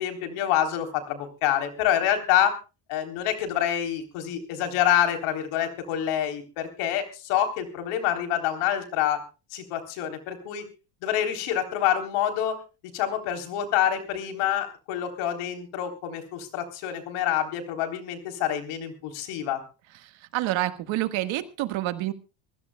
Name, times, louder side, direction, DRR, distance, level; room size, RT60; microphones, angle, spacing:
voice 1, 0.0-2.5 2.9-9.2 9.5-10.6 11.0-12.5 12.9-19.6, left 10 dB, 75° left, 5 dB, 3.8 m, -27 dB
voice 2, 20.3-22.1, right 15 dB, 65° right, 10 dB, 1.7 m, -27 dB
25.0 x 15.5 x 2.3 m, 0.32 s
supercardioid pair, 105°, 50 cm